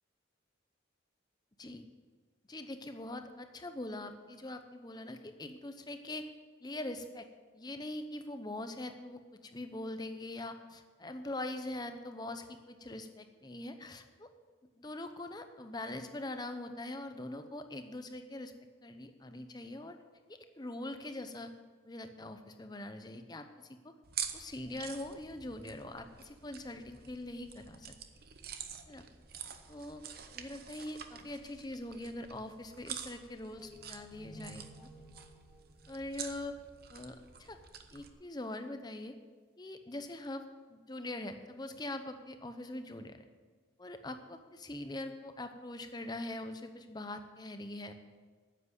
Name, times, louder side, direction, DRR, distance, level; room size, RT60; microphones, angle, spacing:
voice 1, 2.5-6.3 6.6-7.3 7.5-14.3 14.8-18.5 18.8-20.0 20.3-21.5 21.8-23.9 24.3-27.9 28.9-29.0 29.7-30.0 30.3-34.9 35.9-36.6 36.9-37.6 37.9-39.2 39.6-40.4 40.7-43.2 43.8-47.9, left 1 dB, 20° left, 8 dB, 0.8 m, -43 dB
sound 1, 24.0-38.1, right 8 dB, 50° right, 0.8 m, -47 dB
sound 2, 33.5-37.0, equal, 5° right, 1.3 m, -55 dB
9.8 x 7.9 x 8.2 m, 1.4 s
head